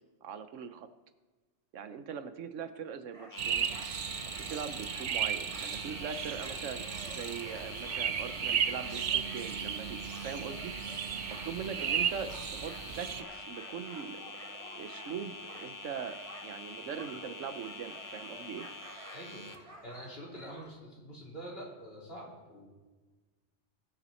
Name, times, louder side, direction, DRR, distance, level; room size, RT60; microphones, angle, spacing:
voice 1, 0.2-0.9 1.7-3.7 4.2-10.7 11.3-14.2 14.7-18.7, right 7 dB, 90° right, 11 dB, 1.2 m, -41 dB
sound 1, 3.1-20.7, right 1 dB, 30° right, 1.5 m, -53 dB
sound 2, 3.3-19.6, left 3 dB, 20° left, 0.6 m, -46 dB
sound 3, 3.4-13.2, right 8 dB, 55° right, 0.6 m, -35 dB
voice 2, 19.1-22.7, right 1 dB, 55° left, -4 dB, 3.9 m, -46 dB
20.0 x 6.9 x 4.4 m, 1.3 s
omnidirectional pair, 1.2 m